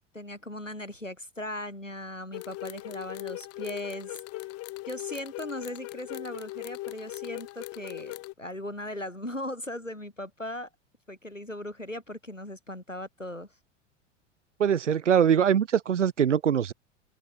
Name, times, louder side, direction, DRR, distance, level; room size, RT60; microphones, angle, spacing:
voice 1, 0.1-4.5 4.9-10.7 11.1-13.5, left 1 dB, 90° left, 7.5 m, -38 dB
sound 1, 2.3-8.3, left 19 dB, 40° left, 5.9 m, -39 dB
voice 2, 14.6-16.7, right 8 dB, 75° right, 1.3 m, -22 dB
open air
figure-of-eight pair, 80°, 37 cm